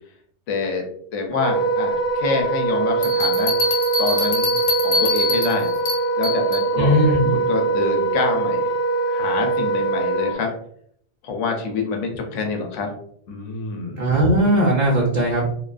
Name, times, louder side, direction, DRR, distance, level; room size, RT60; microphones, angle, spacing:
voice 1, 0.5-0.8 1.1-3.5 4.0-5.7 6.2-7.0 7.3-8.7 9.1-10.5 11.2-12.9 13.3-14.0, left 4 dB, 90° left, 3 dB, 0.9 m, -26 dB
Wind instrument woodwind instrument, 1.3-10.3, right 3 dB, 5° right, 0.6 m, -22 dB
sound 1, 3.0-6.7, left 2 dB, 50° left, 0.8 m, -25 dB
voice 2, 6.8-7.3 14.0-15.5, right 1 dB, 55° right, -4 dB, 0.5 m, -18 dB
2.4 x 2.4 x 2.2 m, 0.64 s
omnidirectional pair, 1.2 m